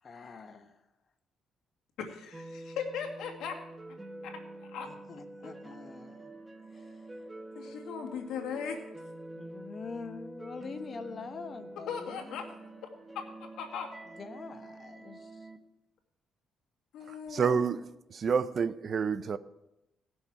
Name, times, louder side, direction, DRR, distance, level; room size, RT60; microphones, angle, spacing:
voice 1, 0.0-0.8 4.9-6.3 6.7-7.3 9.4-12.4 14.0-15.5, left 5 dB, 45° left, 1.2 m, -45 dB
voice 2, 2.0-3.6 4.2-4.9 7.6-8.8 11.9-12.5 13.2-13.9 16.9-17.8, left 7 dB, 85° left, 1.8 m, -38 dB
sound 1, 2.3-15.6, right 2 dB, 20° right, 1.0 m, -47 dB
voice 3, 17.3-17.8 18.1-19.4, right 6 dB, 50° right, 0.5 m, -28 dB
18.0 x 6.4 x 4.7 m
cardioid pair, 90°, 0 cm